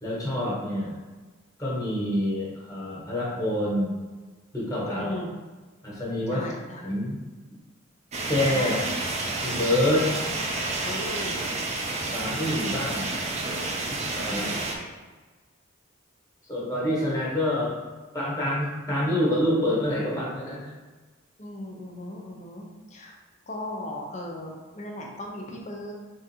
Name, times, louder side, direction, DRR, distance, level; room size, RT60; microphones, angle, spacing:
voice 1, 0.0-1.0 1.6-3.9 4.5-5.1 5.8-6.4 6.8-7.2 8.3-8.7 9.4-10.1 12.1-13.1 13.9-14.5 16.5-17.8 18.1-20.7, left 1 dB, 15° left, -6 dB, 1.2 m, -27 dB
voice 2, 5.0-5.3 6.3-6.9 8.5-9.1 10.8-11.5 14.3-14.8 21.4-23.2 23.5-25.9, left 1 dB, 35° left, 0 dB, 0.7 m, -37 dB
sound 1, 8.1-14.8, right 2 dB, 35° right, 0.5 m, -30 dB
3.7 x 2.5 x 4.3 m, 1.3 s
head